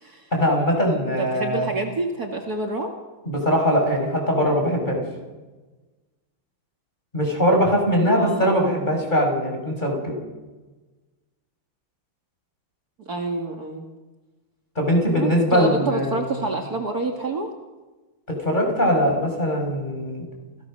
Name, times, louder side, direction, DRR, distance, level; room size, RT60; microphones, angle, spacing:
voice 1, 0.3-1.7 3.2-5.0 7.1-10.1 14.7-16.5 18.4-20.3, equal, 20° left, 1 dB, 6.6 m, -21 dB
voice 2, 1.2-2.9 8.1-8.8 13.1-13.8 15.1-17.5, right 2 dB, 45° right, 2 dB, 2.4 m, -28 dB
29.5 x 16.5 x 6.7 m, 1.2 s
omnidirectional pair, 2.4 m